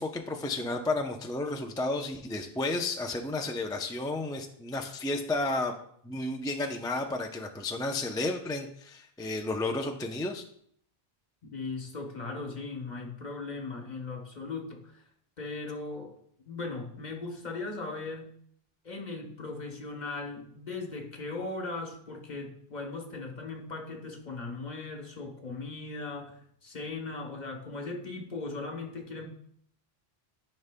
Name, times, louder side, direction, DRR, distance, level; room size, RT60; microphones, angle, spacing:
voice 1, 0.0-5.8 6.0-10.4, left 2 dB, 5° left, 2 dB, 0.4 m, -32 dB
voice 2, 11.5-15.0 15.4-16.1 16.4-18.3 18.8-29.2, left 3 dB, 45° left, 2 dB, 1.2 m, -38 dB
13.0 x 5.3 x 2.2 m, 0.66 s
omnidirectional pair, 1.1 m